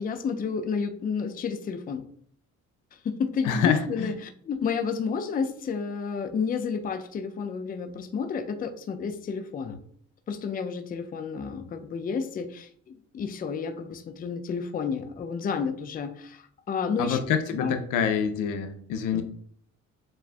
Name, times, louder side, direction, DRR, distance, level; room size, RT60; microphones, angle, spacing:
voice 1, 0.0-2.0 3.0-9.8 10.3-17.2 17.5-17.8 19.1-19.2, left 6 dB, 30° left, 7 dB, 0.4 m, -31 dB
voice 2, 3.4-4.1 17.0-19.2, left 7 dB, 90° left, 8 dB, 0.6 m, -26 dB
7.3 x 2.5 x 2.2 m, 0.62 s
cardioid pair, 125°, 31 cm